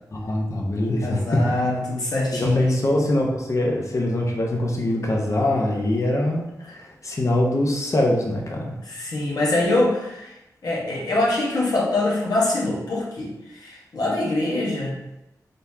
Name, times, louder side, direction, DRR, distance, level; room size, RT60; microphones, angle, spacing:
voice 1, 0.1-1.4 2.3-8.7, left 1 dB, 50° left, 0 dB, 0.9 m, -23 dB
voice 2, 1.0-2.8 6.6-6.8 8.8-10.3 10.6-15.0, left 2 dB, 75° left, -4 dB, 1.3 m, -24 dB
4.1 x 3.5 x 2.8 m, 0.89 s
cardioid pair, 55°, 7 cm